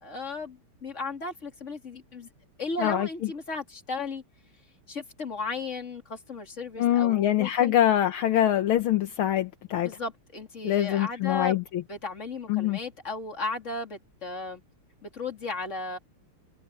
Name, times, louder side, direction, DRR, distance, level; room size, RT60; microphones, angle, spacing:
voice 1, 0.0-2.3 2.6-4.2 4.9-7.7 9.8-11.6 11.9-14.6 15.0-16.0, left 3 dB, 35° left, 3.3 m, -35 dB
voice 2, 6.8-9.9 10.6-11.8 12.5-12.8, left 11 dB, 75° left, 1.8 m, -24 dB
omnidirectional pair, 2.4 m